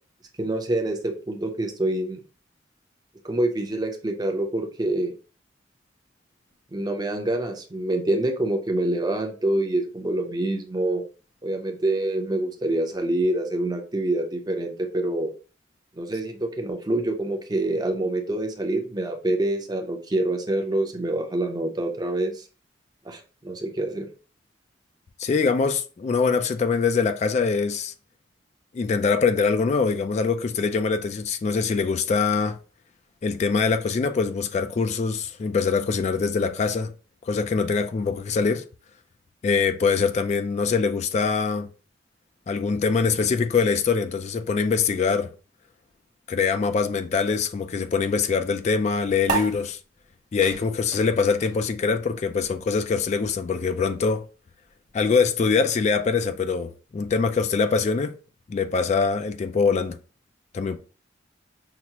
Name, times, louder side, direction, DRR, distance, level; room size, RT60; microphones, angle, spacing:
voice 1, 0.4-2.2 3.2-5.1 6.7-11.0 11.4-15.3 16.0-22.4 23.1-24.1, right 1 dB, 25° right, 0.6 m, -26 dB
voice 2, 25.2-27.9 28.7-32.6 33.2-36.9 37.3-38.6 39.4-41.7 42.5-45.3 46.3-49.8 50.3-54.2 54.9-58.1 58.5-60.0 60.5-60.8, left 5 dB, 40° left, 0.3 m, -23 dB
sound 1, 49.2-56.1, right 4 dB, 45° right, 1.1 m, -36 dB
5.8 x 2.0 x 2.8 m
head